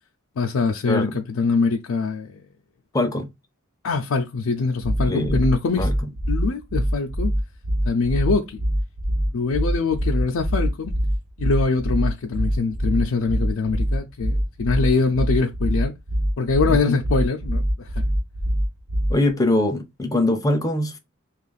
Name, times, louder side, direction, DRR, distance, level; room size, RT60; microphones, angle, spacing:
voice 1, 0.4-2.4 3.8-5.9 6.3-7.3 7.8-8.6 9.3-11.0 11.4-15.9 16.4-18.1, left 4 dB, 75° left, 0.4 m, -23 dB
voice 2, 2.9-3.3 5.1-5.4 5.8-5.9 16.7-17.0 19.1-21.0, left 1 dB, 15° left, 0.5 m, -22 dB
sound 1, 4.8-19.3, equal, 60° right, 0.7 m, -23 dB
3.0 x 2.4 x 3.9 m
head